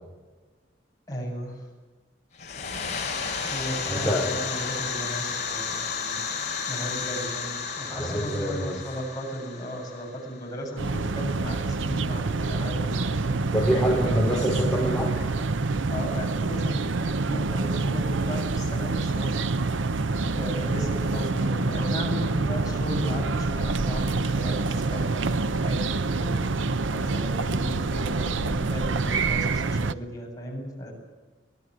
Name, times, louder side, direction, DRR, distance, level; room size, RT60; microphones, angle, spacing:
voice 1, 1.1-1.6 3.5-6.2 6.7-13.4 14.1-14.5 15.9-19.9 20.3-26.6 26.9-30.9, equal, 20° left, -1 dB, 7.8 m, -36 dB
sound 1, 2.3-10.9, left 5 dB, 40° left, 5.7 m, -32 dB
voice 2, 3.9-4.2 7.8-8.8 13.4-15.2, equal, 5° left, -4 dB, 4.3 m, -25 dB
sound 2, 10.8-29.9, right 3 dB, 85° right, 0.8 m, -26 dB
24.5 x 18.0 x 9.6 m, 1.3 s
head